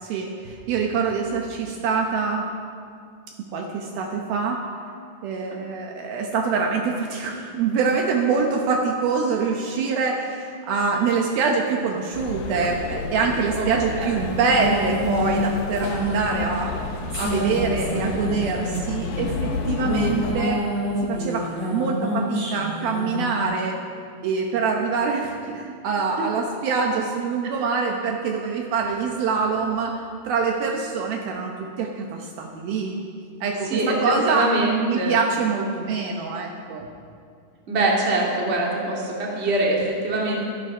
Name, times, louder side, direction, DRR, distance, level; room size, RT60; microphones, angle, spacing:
voice 1, 0.0-2.5 3.5-4.6 5.2-16.7 17.2-20.7 21.0-23.8 24.2-33.0 33.4-36.9, right 5 dB, 70° right, 1 dB, 2.5 m, -25 dB
sound 1, 12.1-20.3, left 4 dB, 70° left, 2.7 m, -31 dB
sound 2, 14.1-19.2 19.7-23.4, left 1 dB, 45° right, 5.5 m, -28 dB
voice 2, 33.6-34.0 34.3-35.1 37.7-40.4, right 2 dB, 25° right, -3 dB, 1.6 m, -23 dB
15.5 x 12.5 x 5.4 m, 2.3 s
omnidirectional pair, 4.9 m